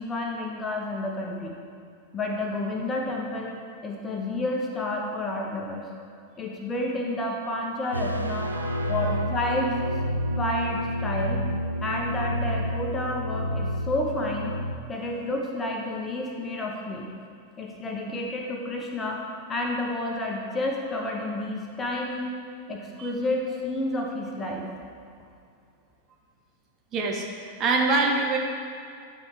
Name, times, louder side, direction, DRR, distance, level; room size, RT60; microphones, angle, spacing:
voice 1, 0.0-1.5 2.1-5.9 6.4-8.5 8.9-9.8 10.4-11.4 11.8-14.5 14.9-17.1 17.6-19.2 19.5-22.3 22.7-24.7, left 1 dB, 20° left, 0 dB, 0.9 m, -30 dB
sound 1, 7.9-14.8, equal, 85° right, 0.3 m, -29 dB
voice 2, 8.5-9.2 23.0-23.1 26.9-28.4, right 3 dB, 30° right, 0 dB, 0.8 m, -26 dB
9.5 x 4.2 x 3.3 m, 2.4 s
figure-of-eight pair, 90°, 0 cm